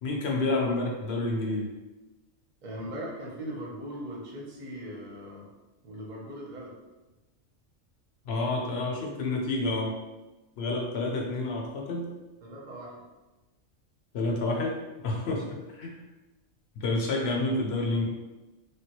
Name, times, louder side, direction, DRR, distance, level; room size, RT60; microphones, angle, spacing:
voice 1, 0.0-1.7 8.2-9.9 10.6-12.1 14.1-16.1 16.8-18.1, left 2 dB, 60° left, -1 dB, 0.8 m, -29 dB
voice 2, 2.6-5.5 5.8-6.7 12.4-13.0 15.4-15.5, equal, 40° right, -3 dB, 0.8 m, -39 dB
3.3 x 2.3 x 2.9 m, 1.1 s
omnidirectional pair, 1.3 m